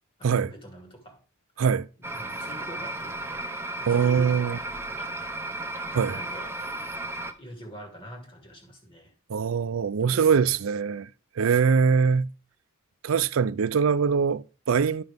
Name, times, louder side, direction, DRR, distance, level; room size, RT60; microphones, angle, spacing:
voice 1, 0.2-1.2 2.0-3.4 3.8-5.2 6.1-6.6 7.4-9.1 10.0-10.6, right 1 dB, 25° left, 2.3 m, -45 dB
sound 1, 2.0-7.3, right 2 dB, 10° right, 0.7 m, -34 dB
voice 2, 3.9-4.6 5.9-6.2 9.3-11.1 11.4-12.3 13.0-15.0, right 6 dB, 70° right, 0.4 m, -23 dB
10.5 x 5.9 x 3.5 m
head